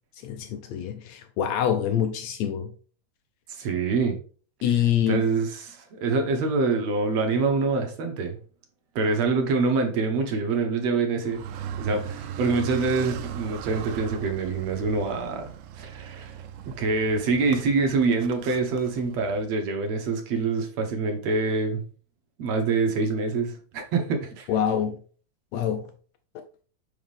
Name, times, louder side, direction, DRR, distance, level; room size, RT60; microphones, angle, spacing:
voice 1, 0.2-2.7 4.6-5.2 24.5-25.0 25.5-25.9, left 9 dB, 75° left, 1.7 m, -25 dB
voice 2, 3.5-4.2 5.1-8.4 9.0-11.4 11.8-15.5 15.8-16.4 16.7-21.8 22.4-24.5, right 4 dB, 65° right, 2.2 m, -25 dB
Car, 11.2-19.5, right 9 dB, 80° right, 2.1 m, -38 dB
5.8 x 5.3 x 3.4 m
omnidirectional pair, 3.5 m